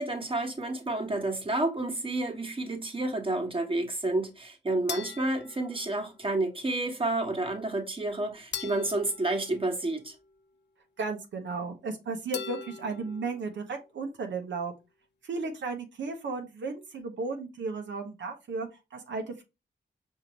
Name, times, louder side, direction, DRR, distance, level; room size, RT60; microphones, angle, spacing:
voice 1, 0.0-10.1, right 2 dB, 30° right, 1.2 m, -30 dB
sound 1, 4.9-6.4 8.5-10.4 12.3-13.5, left 6 dB, 70° left, 0.6 m, -42 dB
voice 2, 11.0-14.7 15.2-19.4, right 4 dB, 80° right, 0.8 m, -34 dB
5.2 x 2.8 x 2.9 m
cardioid pair, 65°, 19 cm